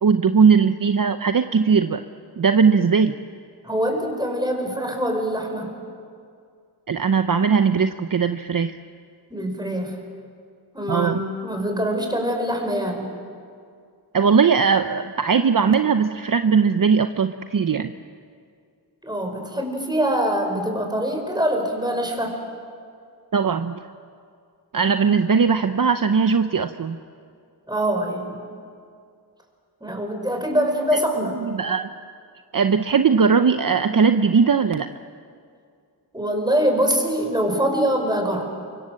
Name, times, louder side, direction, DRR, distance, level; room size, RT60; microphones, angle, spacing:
voice 1, 0.0-2.0 2.4-3.1 6.9-8.8 10.9-11.2 14.1-17.9 23.3-23.8 24.7-27.0 30.9-31.0 31.4-31.9 32.5-34.9, right 5 dB, 55° right, 8 dB, 0.8 m, -19 dB
voice 2, 3.6-5.8 9.3-10.0 10.7-13.1 19.0-22.4 27.7-28.5 29.8-31.4 36.1-38.5, equal, 10° right, 3 dB, 5.2 m, -24 dB
29.0 x 25.0 x 7.7 m, 2.3 s
wide cardioid pair, 105°, 40 cm